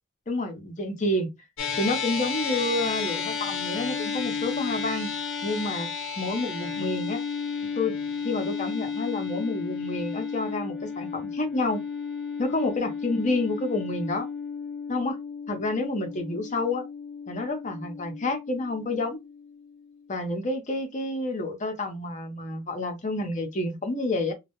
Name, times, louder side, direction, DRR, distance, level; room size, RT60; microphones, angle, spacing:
voice 1, 0.3-1.3 1.8-5.1 5.4-5.9 6.2-7.2 7.8-7.9 8.2-11.8 12.4-14.3 14.9-15.2 15.5-16.9 17.3-19.2 20.1-24.3, left 2 dB, 35° left, 0.6 m, -29 dB
sound 1, 1.6-20.1, left 6 dB, 85° left, 0.7 m, -33 dB
2.2 x 2.1 x 2.9 m
head